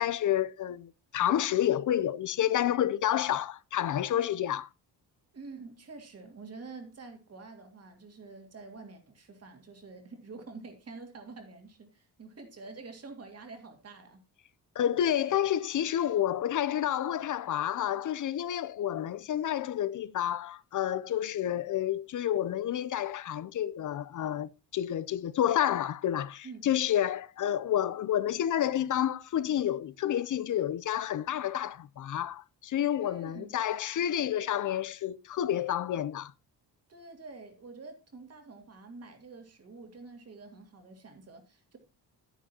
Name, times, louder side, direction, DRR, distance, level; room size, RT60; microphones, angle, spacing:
voice 1, 0.0-4.7 14.8-36.3, left 11 dB, 50° left, 0.5 m, -29 dB
voice 2, 5.3-14.2 26.4-26.6 33.0-33.5 36.9-41.8, right 3 dB, 35° right, 2.3 m, -47 dB
11.0 x 10.0 x 2.8 m
cardioid pair, 140°, 40 cm